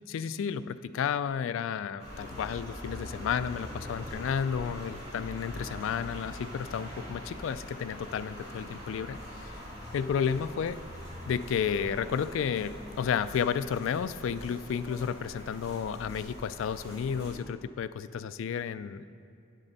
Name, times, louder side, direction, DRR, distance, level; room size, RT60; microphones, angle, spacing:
voice 1, 0.1-9.2 9.9-10.8 11.3-19.0, left 7 dB, 80° left, 14 dB, 0.3 m, -32 dB
sound 1, 2.0-17.3, equal, 30° right, 2.2 m, -43 dB
9.9 x 7.5 x 4.0 m, 2.6 s
head